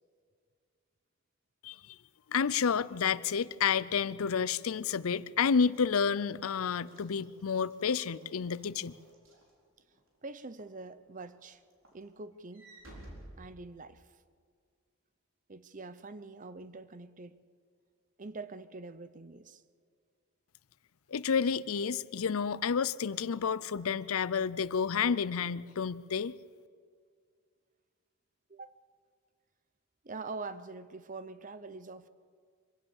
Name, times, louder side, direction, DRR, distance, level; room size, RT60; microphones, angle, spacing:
voice 1, 2.3-8.9 21.1-26.4, left 6 dB, 80° left, 0.5 m, -30 dB
Walk footsteps / Slam, 4.4-10.1 10.6-10.9 11.2-14.2, right 1 dB, 65° right, 4.5 m, -56 dB
voice 2, 10.2-11.6 11.9-12.7 13.4-14.0 15.5-17.4 18.2-19.6 28.5-28.8 30.0-32.1, right 3 dB, 40° right, 0.7 m, -44 dB
24.5 x 16.5 x 7.2 m
head